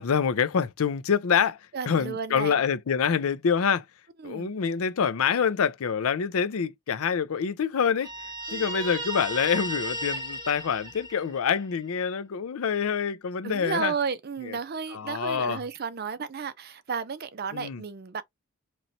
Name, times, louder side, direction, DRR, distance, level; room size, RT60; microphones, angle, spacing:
voice 1, 0.0-1.6 1.9-3.8 4.2-8.1 8.5-13.9 14.9-15.6 17.5-17.8, left 7 dB, 70° left, 0.5 m, -26 dB
voice 2, 1.7-2.5 4.2-4.5 8.5-8.7 13.4-18.2, right 5 dB, 45° right, 0.4 m, -33 dB
Guitar, 8.0-11.6, equal, 20° right, 1.0 m, -34 dB
4.1 x 3.0 x 2.7 m
head